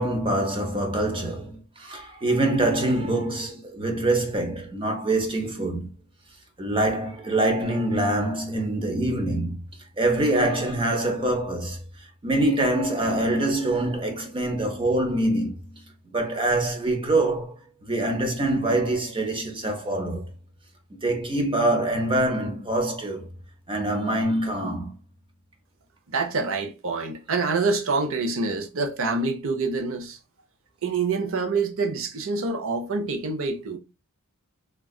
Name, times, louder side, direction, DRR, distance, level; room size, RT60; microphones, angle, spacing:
voice 1, 0.0-5.9 6.6-9.6 10.0-11.8 12.2-15.7 16.1-17.6 17.9-20.3 20.9-23.3 23.7-24.9, right 1 dB, 25° right, 0.6 m, -25 dB
voice 2, 26.1-30.2 30.8-33.8, right 4 dB, 65° right, 0.6 m, -26 dB
3.7 x 2.3 x 2.3 m
head